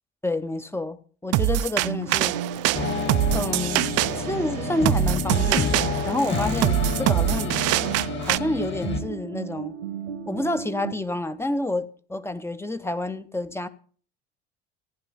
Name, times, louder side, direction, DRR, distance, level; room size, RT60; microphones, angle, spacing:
voice 1, 0.2-2.4 3.3-3.9 4.1-7.6 8.2-9.7 10.3-13.7, left 2 dB, 5° left, 0.8 m, -29 dB
sound 1, 1.3-8.4, right 15 dB, 45° right, 0.5 m, -24 dB
sound 2, 1.8-10.9, right 7 dB, 80° right, 1.5 m, -34 dB
sound 3, 2.7-9.0, left 6 dB, 30° left, 1.9 m, -29 dB
15.0 x 10.5 x 4.1 m
figure-of-eight pair, 65°, 35 cm